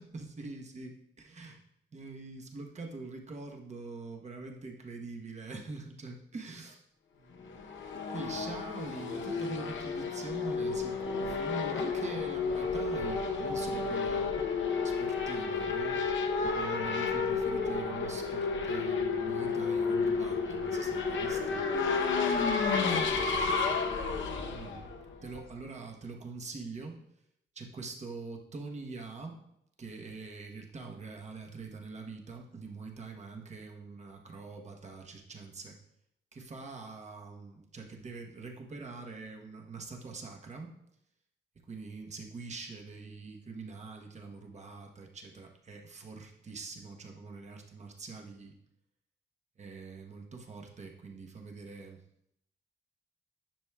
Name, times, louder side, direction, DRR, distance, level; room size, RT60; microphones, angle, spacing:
voice 1, 0.0-1.6 1.9-6.8 7.1-7.6 8.1-14.3 14.8-16.0 16.4-21.7 24.5-24.8 25.2-27.0 27.5-29.4 29.8-35.8 36.3-40.8 41.7-48.5 49.6-52.0, right 4 dB, 35° right, 2 dB, 1.0 m, -44 dB
Race car auto racing / Accelerating revving vroom, 7.4-25.6, left 5 dB, 75° left, 0.7 m, -31 dB
10.5 x 6.1 x 2.3 m, 0.78 s
wide cardioid pair, 150°, 20 cm